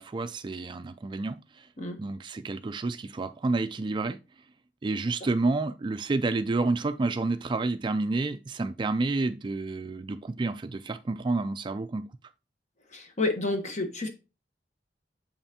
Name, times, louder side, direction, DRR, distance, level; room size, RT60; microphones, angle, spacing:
voice 1, 0.0-1.4 2.0-4.2 4.8-12.1, right 3 dB, 25° right, 0.3 m, -29 dB
voice 2, 12.9-14.1, left 2 dB, 40° left, 1.2 m, -29 dB
7.0 x 5.6 x 2.8 m
head